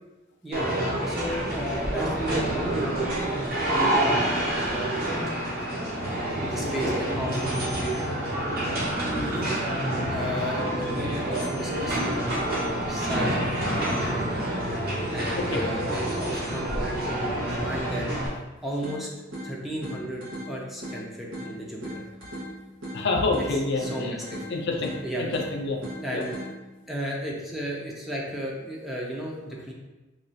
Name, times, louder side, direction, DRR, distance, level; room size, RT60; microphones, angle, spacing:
sound 1, 0.5-18.3, right 1 dB, 50° right, 0.9 m, -28 dB
voice 1, 1.1-5.8 6.4-8.1 9.2-9.6 10.1-14.5 15.1-18.1 18.6-19.1 19.4-22.0 23.4-24.5 25.0-25.3 26.0-26.3 26.9-29.7, equal, ahead, -4 dB, 0.5 m, -34 dB
sound 2, 18.8-26.8, equal, 80° right, 1.3 m, -39 dB
voice 2, 22.9-24.1 24.5-24.9 25.2-25.8 26.1-26.2, left 3 dB, 60° left, 2 dB, 0.4 m, -27 dB
3.0 x 2.3 x 4.0 m, 1.1 s
head